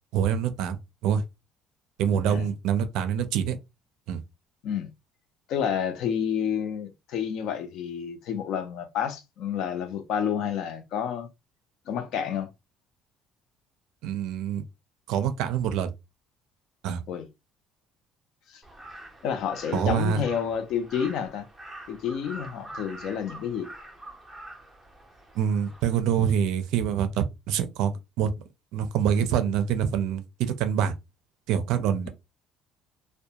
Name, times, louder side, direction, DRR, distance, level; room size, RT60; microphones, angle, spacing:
voice 1, 0.1-0.8 1.0-1.2 2.0-3.6 4.1-4.2 14.0-14.6 15.1-15.9 16.8-17.0 19.7-20.2 25.3-27.9 28.2-28.3 28.7-30.9 31.5-32.1, right 8 dB, 70° right, 0.4 m, -25 dB
voice 2, 5.5-11.3 11.9-12.5 17.1-17.3 18.5-18.6 19.2-21.5 21.9-23.7, left 8 dB, 55° left, 0.5 m, -29 dB
Crow, 18.6-26.0, right 1 dB, ahead, 0.5 m, -45 dB
2.3 x 2.1 x 2.8 m
cardioid pair, 175°, 0 cm